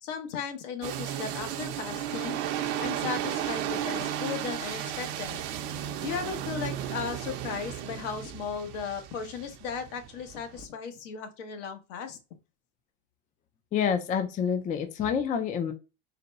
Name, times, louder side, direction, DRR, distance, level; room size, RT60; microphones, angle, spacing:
voice 1, 0.0-5.4 6.0-12.2, left 6 dB, 75° left, 6 dB, 1.2 m, -36 dB
sound 1, 0.8-10.7, right 11 dB, 50° right, 0.7 m, -34 dB
voice 2, 13.7-15.7, left 7 dB, 20° left, 8 dB, 0.4 m, -27 dB
4.0 x 2.2 x 3.9 m, 0.29 s
supercardioid pair, 135°, 36 cm